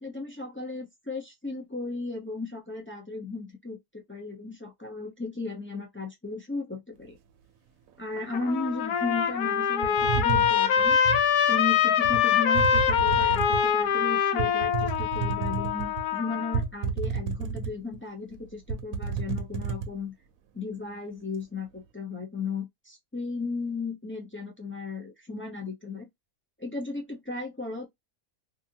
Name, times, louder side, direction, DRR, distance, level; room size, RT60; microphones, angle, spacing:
voice 1, 0.0-7.2 8.0-11.0 11.5-20.1 20.5-26.1 26.6-27.9, left 3 dB, 20° left, 0.3 m, -35 dB
Trumpet, 8.2-16.6, left 8 dB, 85° left, 1.1 m, -24 dB
sound 1, 9.8-11.3 12.0-12.2 12.5-13.7 14.4-16.0 16.5-18.0 18.3-18.4 18.7-19.9, right 5 dB, 70° right, 1.0 m, -30 dB
2.7 x 2.6 x 2.7 m
omnidirectional pair, 1.6 m